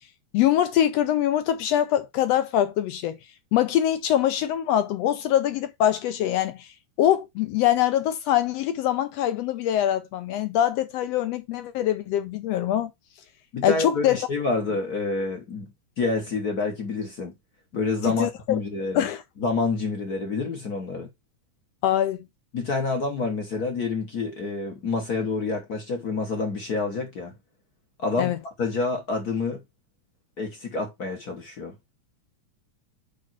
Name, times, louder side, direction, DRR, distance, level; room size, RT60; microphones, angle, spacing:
voice 1, 0.3-3.2 3.5-6.7 7.0-12.9 13.6-14.2 18.1-18.6 18.9-19.2 21.8-22.2 28.2-28.4, left 11 dB, 75° left, 1.6 m, -23 dB
voice 2, 13.5-15.7 16.0-17.3 17.7-19.1 19.4-21.1 22.5-27.3 28.0-29.6 30.4-31.7, left 3 dB, 45° left, 1.3 m, -28 dB
5.3 x 5.0 x 4.5 m
omnidirectional pair, 3.4 m